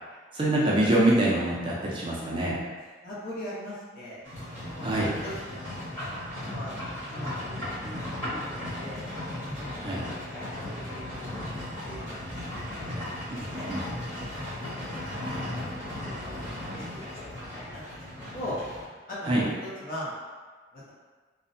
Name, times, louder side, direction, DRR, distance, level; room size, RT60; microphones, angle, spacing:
voice 1, 0.3-2.5 4.8-5.1 9.8-10.1 13.3-13.8 19.2-19.4, right 1 dB, 30° right, -5 dB, 0.4 m, -25 dB
voice 2, 3.0-4.9 5.2-6.1 6.5-6.8 7.1-8.0 8.3-9.0 9.4-12.2 12.7-13.0 13.3-13.7 14.3-14.7 15.0-15.6 16.0-18.6 19.1-19.5 19.8-20.1 20.7-20.9, left 1 dB, 50° left, -9 dB, 0.8 m, -41 dB
Livestock farm animals working animals, 4.2-18.8, left 1 dB, 20° left, 1.1 m, -36 dB
2.5 x 2.0 x 2.6 m, 1.4 s
head